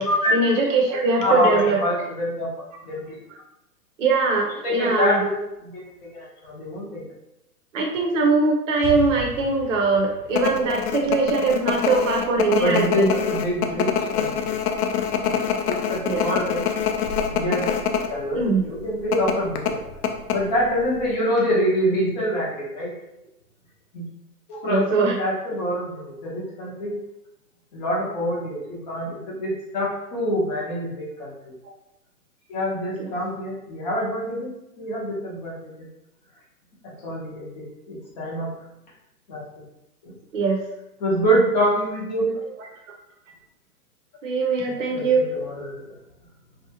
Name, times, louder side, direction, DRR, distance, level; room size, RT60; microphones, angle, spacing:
voice 1, 0.3-1.8 4.0-5.2 7.7-13.1 16.0-16.2 18.3-18.6 24.6-25.2 33.0-33.1 40.3-40.6 44.2-45.3, right 3 dB, 50° right, 1 dB, 0.7 m, -21 dB
voice 2, 1.2-2.5 2.9-3.2 4.6-5.8 6.1-7.0 12.6-14.6 15.7-16.6 17.3-17.7 18.1-19.8 20.3-22.9 23.9-24.0 24.5-26.9 27.7-31.5 32.5-34.5 34.8-35.7 36.8-38.5 39.3-39.4 40.0-40.1 41.0-42.3 44.6-45.8, equal, 25° left, -4 dB, 0.7 m, -26 dB
Explosion, 8.8-12.6, right 1 dB, 10° right, 0.4 m, -37 dB
sound 1, 10.3-18.1 18.4-18.5 19.1-20.8 21.1-21.2, left 8 dB, 70° left, 0.6 m, -25 dB
2.7 x 2.3 x 2.7 m, 0.89 s
hypercardioid pair, 140°, 48 cm